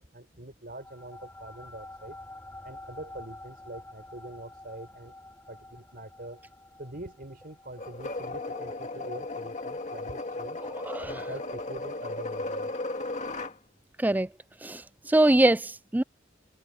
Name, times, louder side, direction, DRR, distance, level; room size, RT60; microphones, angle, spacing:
voice 1, 0.0-2.2 2.6-5.2 5.5-6.4 6.8-10.6 11.0-12.8, right 1 dB, 55° right, 5.2 m, -44 dB
sound 1, 0.7-11.5, left 2 dB, 10° left, 7.1 m, -49 dB
sound 2, 7.8-13.6, left 2 dB, 40° left, 2.4 m, -35 dB
voice 2, 10.6-11.2 14.0-14.3 14.6-16.0, right 1 dB, 10° right, 0.3 m, -24 dB
head